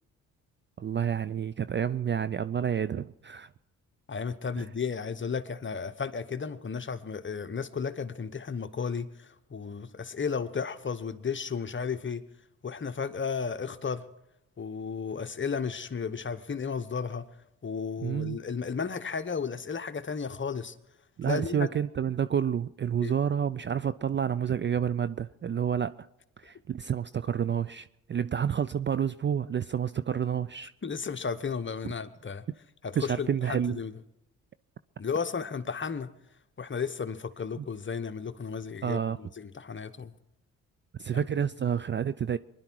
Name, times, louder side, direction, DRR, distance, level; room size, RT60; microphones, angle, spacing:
voice 1, 0.8-3.5 4.6-4.7 18.0-18.4 21.2-26.1 26.4-30.7 33.0-33.8 37.6-37.7 38.8-39.2 41.0-42.4, right 8 dB, 30° right, 0.5 m, -29 dB
voice 2, 4.1-12.2 12.6-14.0 14.6-17.2 17.6-20.7 21.3-21.7 23.0-23.1 30.8-32.4 32.8-33.9 35.0-36.1 36.6-40.1 41.1-41.2, left 5 dB, 30° left, 1.1 m, -34 dB
24.5 x 11.0 x 4.7 m
hypercardioid pair, 50°, 40 cm